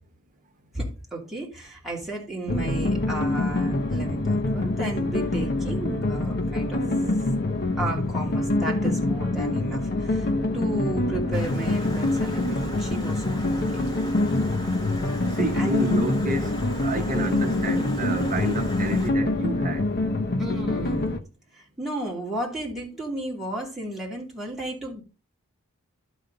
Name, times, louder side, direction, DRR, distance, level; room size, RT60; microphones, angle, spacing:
voice 1, 0.7-6.8 7.8-13.6 15.5-15.9 20.4-21.1 21.5-25.0, right 1 dB, ahead, 2.7 m, -33 dB
sound 1, 2.5-21.2, left 2 dB, 50° left, 0.9 m, -25 dB
Stream, 11.3-19.1, equal, 20° left, 1.5 m, -40 dB
voice 2, 15.3-19.9, right 1 dB, 40° right, 1.1 m, -29 dB
11.5 x 5.1 x 3.9 m
head